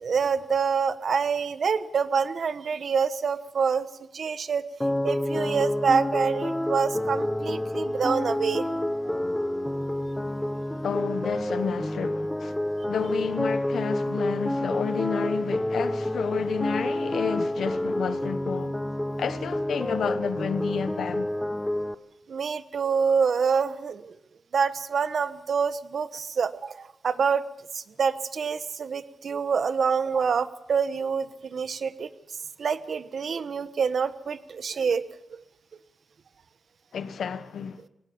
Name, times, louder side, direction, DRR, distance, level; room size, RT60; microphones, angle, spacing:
voice 1, 0.0-3.9 4.1-4.6 5.0-8.6 9.0-9.1 22.3-24.1 24.5-27.4 27.7-32.1 32.6-35.0, right 6 dB, 65° right, 1.1 m, -26 dB
sound 1, 4.8-21.9, left 1 dB, 10° left, 0.9 m, -29 dB
voice 2, 10.8-12.5 12.9-18.8 19.2-21.3 36.9-37.8, left 7 dB, 90° left, 1.2 m, -30 dB
20.5 x 18.5 x 7.2 m
wide cardioid pair, 105°, 0 cm